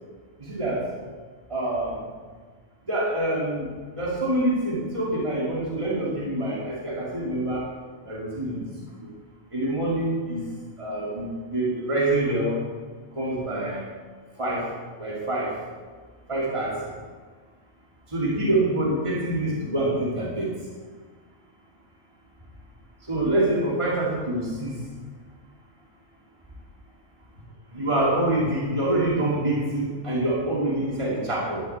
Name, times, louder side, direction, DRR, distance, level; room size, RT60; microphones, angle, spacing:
voice 1, 0.4-0.8 1.5-2.0 2.9-3.7 4.0-7.6 8.0-8.6 9.5-10.4 10.8-12.6 13.1-13.8 14.4-14.7 15.0-15.5 16.3-16.9 18.1-20.5 23.1-24.7 27.7-31.6, right 1 dB, 25° right, -6 dB, 2.7 m, -26 dB
11.5 x 8.2 x 8.1 m, 1.5 s
omnidirectional pair, 1.4 m